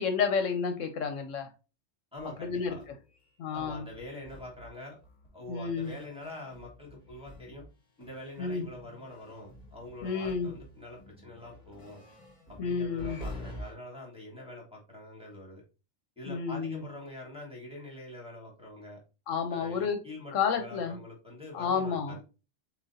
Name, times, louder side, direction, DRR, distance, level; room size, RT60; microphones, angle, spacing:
voice 1, 0.0-1.5 2.4-2.7 3.4-3.8 5.5-5.9 8.4-8.7 10.0-10.5 12.6-13.2 16.3-16.8 19.3-20.0 20.3-21.0 21.5-22.2, left 6 dB, 75° left, 6 dB, 1.1 m, -30 dB
voice 2, 2.1-2.8 3.5-5.0 5.3-7.6 8.0-12.0 12.5-15.6 16.2-19.0 19.5-22.2, left 2 dB, 5° right, -4 dB, 1.4 m, -45 dB
sound 1, 2.2-7.7 8.0-13.7, equal, 30° left, 1.4 m, -48 dB
7.3 x 2.5 x 2.6 m, 0.31 s
omnidirectional pair, 1.3 m